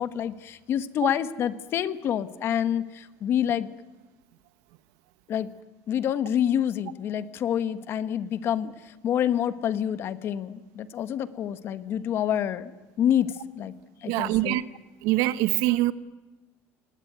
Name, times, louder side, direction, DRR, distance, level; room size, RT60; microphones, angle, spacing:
voice 1, 0.0-3.7 5.3-5.5 5.9-12.7 13.0-13.7 14.0-14.6, left 9 dB, 45° left, 1.2 m, -27 dB
voice 2, 14.0-14.6 15.0-15.9, right 16 dB, 80° right, 1.0 m, -24 dB
29.0 x 19.0 x 9.4 m
cardioid pair, 150°, 6 cm